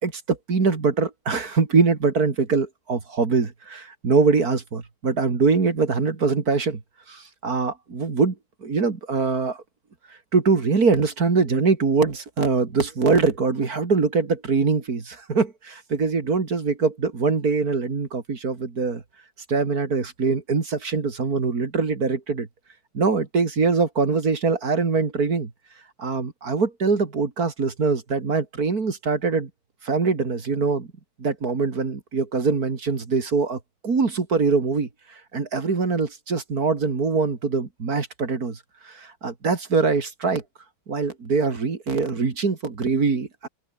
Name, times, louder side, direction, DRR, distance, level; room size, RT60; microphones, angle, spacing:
voice 1, 0.0-6.8 7.1-8.3 8.6-9.6 10.3-19.0 19.5-22.5 22.9-25.5 26.0-29.5 29.8-30.9 31.2-33.6 33.8-34.9 35.3-38.6 38.8-40.4 40.9-43.5, right 4 dB, 60° right, 3.0 m, -23 dB
open air
omnidirectional pair, 1.9 m